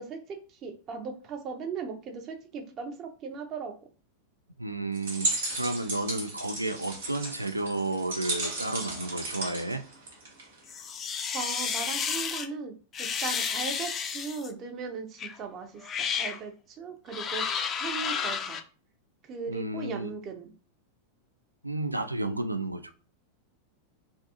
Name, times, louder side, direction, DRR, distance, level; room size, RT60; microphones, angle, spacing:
voice 1, 0.0-3.7 11.3-17.4 17.8-18.6 19.2-20.5, right 5 dB, 35° right, 5 dB, 0.6 m, -38 dB
voice 2, 4.6-9.8 19.5-20.1 21.6-22.9, right 2 dB, 85° right, 8 dB, 0.3 m, -32 dB
sound 1, 4.9-10.6, right 2 dB, 60° right, 1.2 m, -34 dB
sound 2, 10.7-12.5 12.9-14.5 15.2-15.4 15.8-16.4 17.1-18.6, left 7 dB, 25° left, 0.3 m, -31 dB
2.6 x 2.2 x 2.7 m, 0.38 s
figure-of-eight pair, 90°, 0 cm